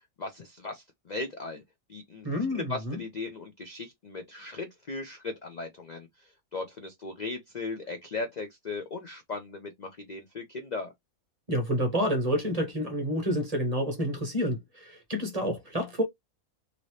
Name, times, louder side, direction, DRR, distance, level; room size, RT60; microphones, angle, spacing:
voice 1, 0.2-1.6 1.9-10.9, left 3 dB, 50° left, 0.5 m, -38 dB
voice 2, 2.2-3.0 11.5-16.0, equal, 30° right, 1.0 m, -29 dB
3.0 x 2.6 x 3.1 m
omnidirectional pair, 1.5 m